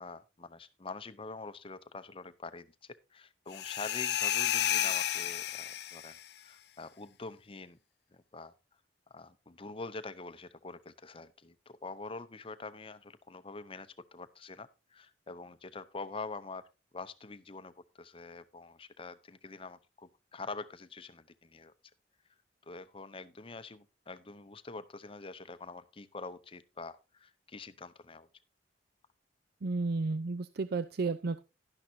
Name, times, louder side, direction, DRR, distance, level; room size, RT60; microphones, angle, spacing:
voice 1, 0.0-2.7 3.1-7.8 8.1-8.5 9.1-16.6 16.9-21.7 22.7-28.3, left 3 dB, 30° left, 12 dB, 0.7 m, -45 dB
sound 1, 3.5-6.2, left 11 dB, 60° left, 0.7 m, -32 dB
voice 2, 29.6-31.4, right 3 dB, 60° right, 12 dB, 0.5 m, -32 dB
11.5 x 10.5 x 2.7 m, 0.28 s
head